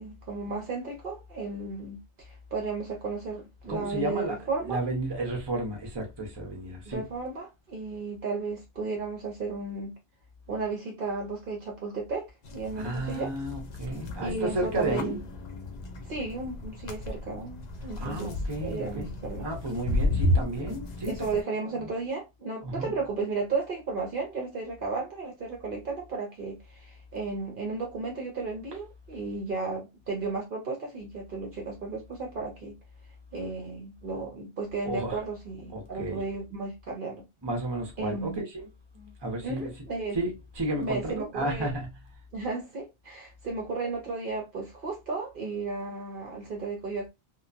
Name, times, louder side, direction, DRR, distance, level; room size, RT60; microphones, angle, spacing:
voice 1, 0.0-2.0 2.3-4.8 6.9-9.9 10.5-13.3 14.2-15.2 16.0-18.3 18.6-19.5 21.1-32.8 33.3-37.2 38.0-38.4 39.4-40.2 40.8-41.7 42.3-47.1, right 3 dB, 55° right, 0.8 m, -34 dB
voice 2, 3.6-4.4 4.6-7.0 12.7-15.2 18.0-21.1 21.7-21.9 22.6-22.9 34.9-35.2 35.7-36.2 37.4-38.7 38.9-39.7 40.1-41.9, right 1 dB, 25° right, 0.8 m, -32 dB
sound 1, 12.4-21.4, left 1 dB, 55° left, 0.5 m, -33 dB
2.9 x 2.2 x 2.4 m
omnidirectional pair, 1.1 m